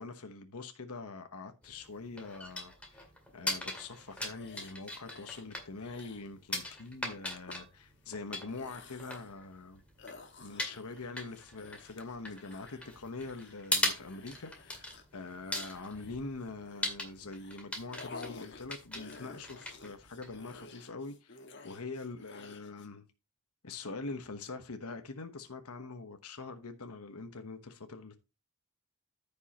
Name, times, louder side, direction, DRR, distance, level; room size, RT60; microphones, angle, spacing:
voice 1, 0.0-3.1 3.3-9.8 10.4-14.9 15.1-21.4 21.6-23.0 23.6-28.2, left 3 dB, 85° left, 1.1 m, -44 dB
sound 1, 1.6-20.6, left 1 dB, 5° left, 2.0 m, -40 dB
sound 2, 4.0-5.5 5.8-6.3 6.7-6.9 7.4-7.6 8.3-9.4 10.0-17.0 17.3-22.9, left 4 dB, 50° left, 1.3 m, -52 dB
14.0 x 5.4 x 2.9 m
head